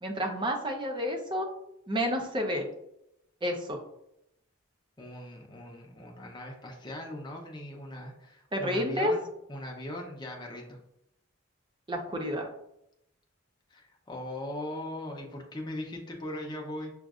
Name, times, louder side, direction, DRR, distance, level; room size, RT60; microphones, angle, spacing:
voice 1, 0.0-1.5 1.9-2.7 3.4-3.8 8.5-9.1 11.9-12.5, equal, 25° right, 3 dB, 0.6 m, -30 dB
voice 2, 5.0-9.2 9.5-10.8 13.7-16.9, left 1 dB, 20° left, 0 dB, 0.7 m, -39 dB
6.2 x 2.5 x 2.4 m, 0.80 s
head